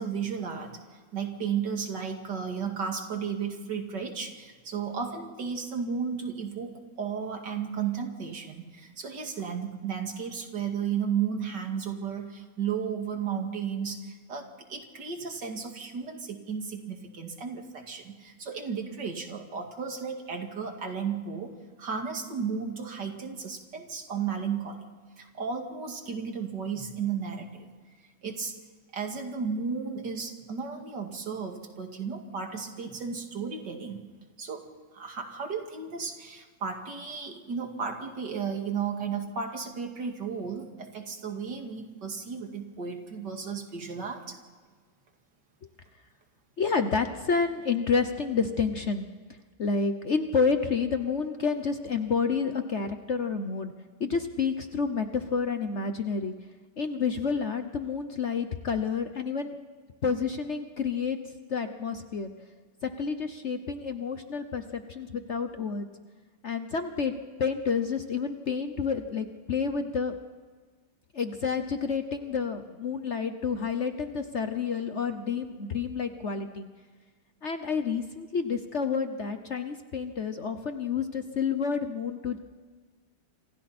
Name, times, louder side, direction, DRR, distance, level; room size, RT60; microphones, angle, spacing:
voice 1, 0.0-21.5 21.8-24.8 25.2-27.7 28.2-28.6 28.9-34.0 34.4-34.7 34.9-44.4, right 6 dB, 85° right, 3 dB, 2.9 m, -34 dB
voice 2, 46.6-49.1 49.6-53.7 54.0-56.3 56.8-59.5 60.0-61.2 61.5-62.3 62.8-65.9 66.4-67.1 67.4-70.1 71.1-76.7 77.4-82.4, left 5 dB, 50° left, 7 dB, 1.2 m, -29 dB
27.5 x 27.0 x 4.3 m, 1.5 s
omnidirectional pair, 1.8 m